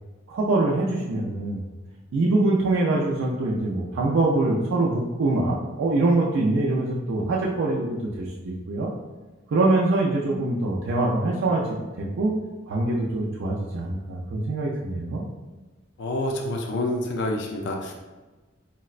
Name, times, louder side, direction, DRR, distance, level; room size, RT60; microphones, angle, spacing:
voice 1, 0.3-1.6 2.1-8.9 9.5-12.3 12.7-15.2, right 2 dB, 70° right, -4 dB, 0.4 m, -24 dB
voice 2, 16.0-17.9, left 1 dB, 60° left, 1 dB, 0.4 m, -27 dB
4.0 x 2.1 x 2.4 m, 1.2 s
head